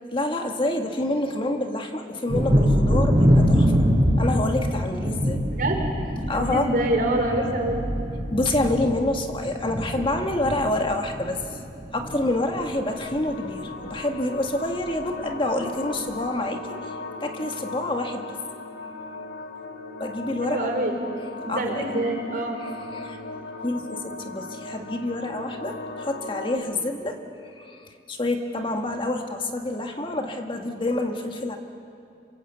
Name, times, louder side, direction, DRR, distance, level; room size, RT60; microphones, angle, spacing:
voice 1, 0.1-3.8 4.2-5.4 6.3-6.7 8.3-11.4 11.9-18.3 20.0-20.6 21.5-22.1 22.6-23.2 23.6-27.2 27.6-31.6, left 1 dB, 30° left, 4 dB, 1.7 m, -27 dB
Thunder, 2.3-11.7 12.0-12.7 13.1-13.2 13.6-13.8, equal, 25° right, 4.8 m, -24 dB
voice 2, 5.5-5.9 6.3-7.8 20.4-21.0 21.4-22.6, right 1 dB, 55° right, 3 dB, 4.2 m, -25 dB
sound 1, 12.7-26.6, left 3 dB, 80° left, 2.6 m, -38 dB
27.5 x 23.0 x 8.2 m, 2.5 s
head